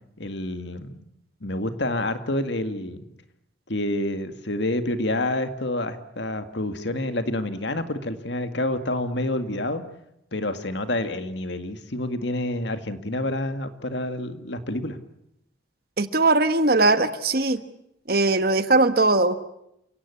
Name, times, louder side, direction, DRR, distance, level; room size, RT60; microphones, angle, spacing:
voice 1, 0.2-1.0 1.4-3.1 3.7-9.8 10.3-15.0, left 1 dB, 65° left, 9 dB, 2.0 m, -28 dB
voice 2, 16.0-17.6 18.1-19.4, right 2 dB, 50° right, 11 dB, 1.4 m, -20 dB
29.0 x 17.5 x 8.5 m, 0.79 s
head